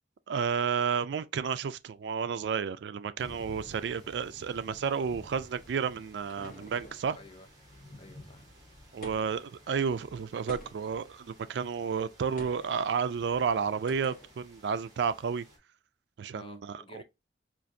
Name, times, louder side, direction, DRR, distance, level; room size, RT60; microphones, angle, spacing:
voice 1, 0.3-7.2 8.9-15.5 16.2-17.0, right 6 dB, 75° right, 0.3 m, -31 dB
sound 1, 3.2-15.6, equal, 20° right, 1.5 m, -54 dB
sound 2, 5.6-7.1 9.0-9.5 10.5-11.0 12.4-12.7 13.9-14.3, equal, 45° left, 1.1 m, -47 dB
voice 2, 7.2-7.5 8.0-8.4 16.3-17.0, left 2 dB, 30° left, 0.5 m, -51 dB
5.9 x 2.5 x 2.6 m
head